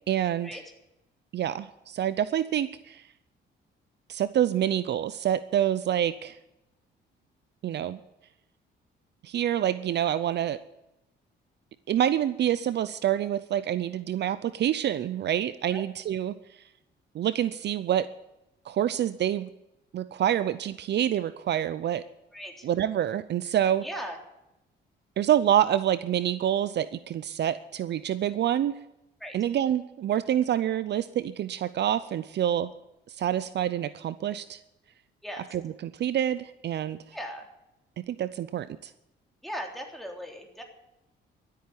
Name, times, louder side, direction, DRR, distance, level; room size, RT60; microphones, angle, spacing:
voice 1, 0.1-0.6 1.3-3.0 4.1-6.4 7.6-8.0 9.2-10.6 11.9-16.3 17.1-18.1 18.7-19.5 19.9-22.0 22.6-23.9 25.2-28.7 29.3-32.7 33.1-34.6 35.5-37.0 38.0-38.9, right 10 dB, 60° right, 15 dB, 0.6 m, -27 dB
voice 2, 22.3-22.7 23.8-24.2 29.2-29.3 35.2-35.4 37.1-37.5 39.4-40.6, equal, ahead, 1 dB, 3.4 m, -38 dB
12.5 x 8.5 x 9.8 m, 0.88 s
cardioid pair, 90°, 20 cm